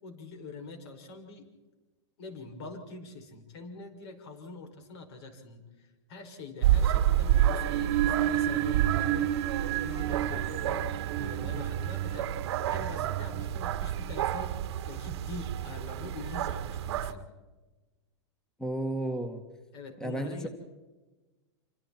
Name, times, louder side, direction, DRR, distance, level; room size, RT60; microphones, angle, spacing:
voice 1, 0.0-1.5 2.2-12.3 12.7-14.6 14.9-17.3 19.7-20.5, left 3 dB, 65° left, 5 dB, 6.4 m, -44 dB
sound 1, 6.6-17.1, right 11 dB, 65° right, 1.4 m, -30 dB
sound 2, 7.3-14.2, right 12 dB, 45° right, 1.5 m, -32 dB
voice 2, 18.6-19.4 20.0-20.5, right 1 dB, 5° left, 7 dB, 1.8 m, -33 dB
28.0 x 26.0 x 4.4 m, 1.2 s
hypercardioid pair, 135°, 15 cm